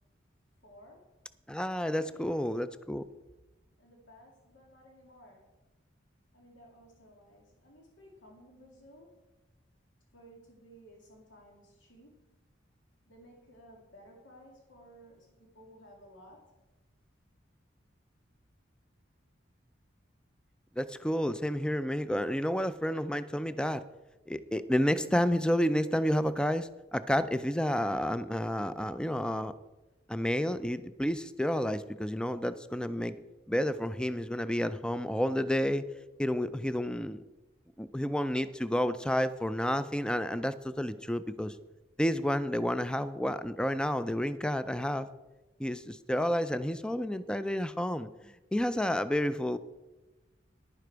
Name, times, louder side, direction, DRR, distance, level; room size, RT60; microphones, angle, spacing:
voice 1, 0.6-1.2 2.0-2.3 3.8-5.6 6.3-9.3 10.1-12.4 13.1-16.5, equal, 90° left, 0 dB, 2.2 m, -56 dB
voice 2, 1.5-3.0 20.8-23.9 24.3-29.5 30.1-33.2 33.5-35.9 36.2-37.2 37.8-41.5 42.0-45.1 45.6-49.6, equal, 5° left, 13 dB, 0.4 m, -30 dB
11.0 x 9.9 x 4.6 m, 1.1 s
head